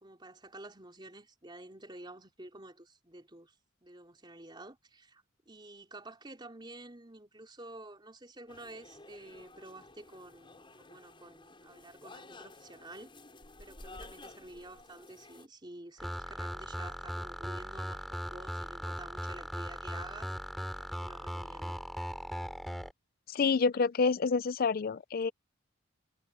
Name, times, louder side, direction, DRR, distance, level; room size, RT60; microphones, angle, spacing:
voice 1, 0.0-3.5 3.8-13.1 13.6-20.3 20.8-21.8, right 2 dB, 25° right, 3.5 m, -50 dB
sound 1, 8.5-15.5, left 2 dB, 25° left, 6.1 m, -53 dB
sound 2, 16.0-22.9, equal, ahead, 3.1 m, -39 dB
voice 2, 23.3-25.3, left 5 dB, 50° left, 0.4 m, -28 dB
head